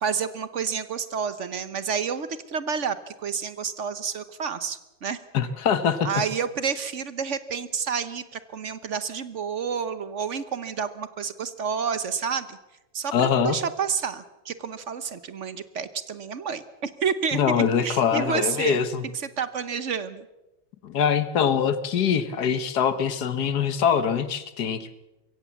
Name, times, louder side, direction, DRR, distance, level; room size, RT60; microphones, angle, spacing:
voice 1, 0.0-5.2 6.0-12.6 12.9-18.8 19.1-20.3, right 6 dB, 50° right, 13 dB, 0.9 m, -29 dB
voice 2, 5.3-6.1 13.1-13.6 17.3-19.0 20.8-24.9, left 7 dB, 55° left, 12 dB, 1.6 m, -23 dB
23.0 x 16.5 x 7.1 m, 0.99 s
omnidirectional pair, 2.3 m